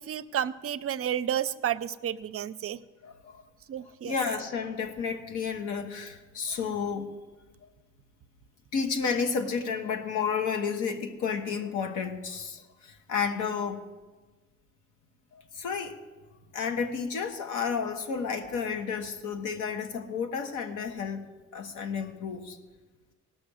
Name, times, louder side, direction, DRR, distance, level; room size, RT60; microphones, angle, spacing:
voice 1, 0.0-2.8 3.7-4.1, right 10 dB, 50° right, 14 dB, 0.5 m, -31 dB
voice 2, 3.0-3.4 4.0-7.1 8.7-13.8 15.3-15.9 16.5-21.3 21.5-22.6, left 6 dB, 85° left, 5 dB, 1.3 m, -31 dB
18.0 x 6.2 x 6.3 m, 1.3 s
cardioid pair, 90°, 30 cm